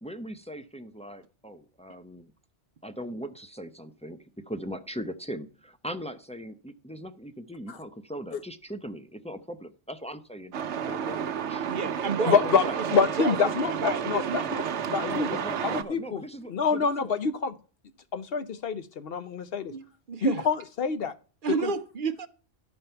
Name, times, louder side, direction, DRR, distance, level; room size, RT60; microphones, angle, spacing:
voice 1, 0.0-2.3 2.8-10.5 10.9-12.8 15.0-17.1, equal, 10° left, 8 dB, 0.4 m, -39 dB
Truck, 10.5-15.8, right 8 dB, 75° right, 1.0 m, -31 dB
voice 2, 11.7-12.4 13.2-14.5 19.7-20.4 21.4-22.3, right 5 dB, 50° right, 12 dB, 0.8 m, -31 dB
voice 3, 12.2-17.5 18.1-19.7 20.2-21.1 21.6-21.7, left 5 dB, 55° left, 12 dB, 1.0 m, -27 dB
12.5 x 5.4 x 4.4 m, 0.37 s
omnidirectional pair, 1.2 m